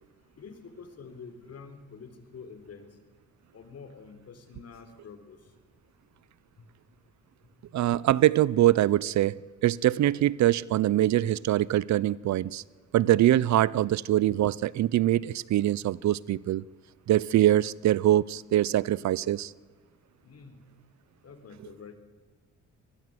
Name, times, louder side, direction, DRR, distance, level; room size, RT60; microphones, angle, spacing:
voice 1, 0.4-2.9 3.5-5.4 20.2-20.6 21.2-22.0, left 5 dB, 55° left, 3.8 m, -47 dB
voice 2, 7.7-9.4 9.6-12.6 12.9-16.6 17.1-19.5, right 13 dB, 65° right, 0.7 m, -23 dB
24.0 x 20.0 x 7.8 m
cardioid pair, 90°, 30 cm